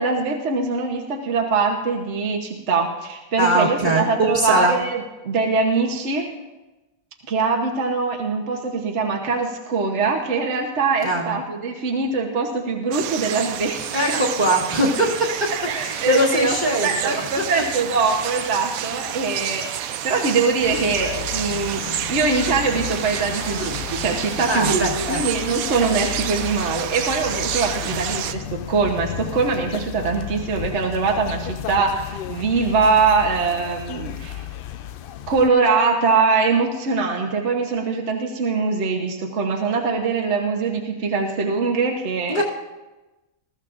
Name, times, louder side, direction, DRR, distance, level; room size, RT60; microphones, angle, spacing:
voice 1, 0.0-6.3 7.3-14.2 15.5-16.6 16.8-34.5 35.3-42.4, right 4 dB, 55° right, 1 dB, 1.3 m, -22 dB
voice 2, 3.4-4.8 11.0-11.4 13.9-15.3 15.8-17.3 24.5-25.2 27.9-28.0 42.3-42.4, right 1 dB, 35° right, -7 dB, 1.6 m, -21 dB
sound 1, 12.9-28.3, right 10 dB, 85° right, 1.1 m, -29 dB
sound 2, 20.6-35.5, left 11 dB, 70° left, 0.5 m, -34 dB
20.5 x 14.0 x 2.5 m, 1.1 s
omnidirectional pair, 1.4 m